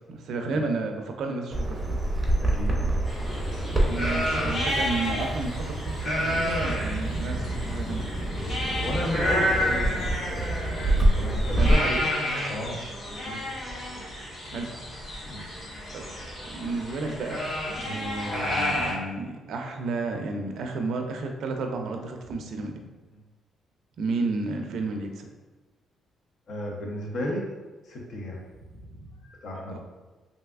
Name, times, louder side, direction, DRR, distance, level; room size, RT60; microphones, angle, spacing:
voice 1, 0.1-2.0 3.8-8.1 11.6-12.0 14.5-14.7 15.9-16.0 16.4-17.5 17.8-22.7 24.0-25.3 29.7-29.8, right 3 dB, 70° right, 4 dB, 0.4 m, -32 dB
Bird vocalization bird call bird song, 1.5-11.7, right 1 dB, 15° right, 0.6 m, -27 dB
voice 2, 2.4-2.8 8.7-12.2 12.5-12.8 13.1-13.4 15.2-15.5 17.8-18.0 18.7-18.8 26.5-27.5 27.8-29.8, left 1 dB, 60° left, 0 dB, 0.7 m, -34 dB
sound 1, 3.0-18.9, left 1 dB, 40° left, 1.4 m, -31 dB
3.2 x 2.6 x 2.3 m, 1.2 s
cardioid pair, 90°, 0 cm